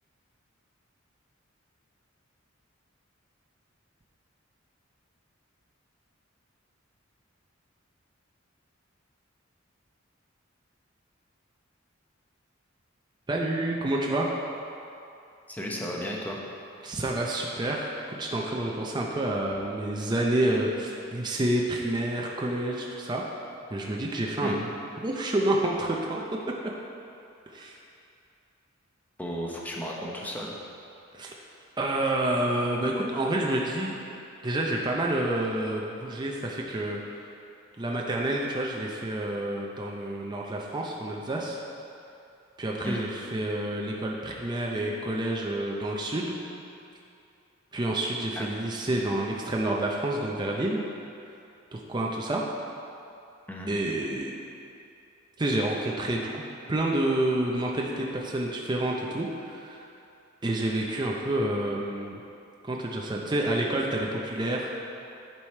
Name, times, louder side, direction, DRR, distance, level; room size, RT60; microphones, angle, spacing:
voice 1, 13.3-14.3 16.8-23.2 23.7-24.6 25.0-26.2 27.5-27.8 31.1-31.3 31.8-34.0 34.4-37.3 37.8-41.6 42.6-46.4 47.7-50.8 51.7-52.4 53.7-54.4 55.4-56.4 56.7-59.9 60.4-62.2 62.6-64.8, right 1 dB, 20° right, -2 dB, 0.5 m, -28 dB
voice 2, 15.5-16.4 24.4-24.6 29.2-30.5 42.8-43.0 48.4-48.6 53.5-53.7, equal, 10° left, -2 dB, 0.9 m, -34 dB
10.5 x 4.9 x 4.3 m, 2.7 s
head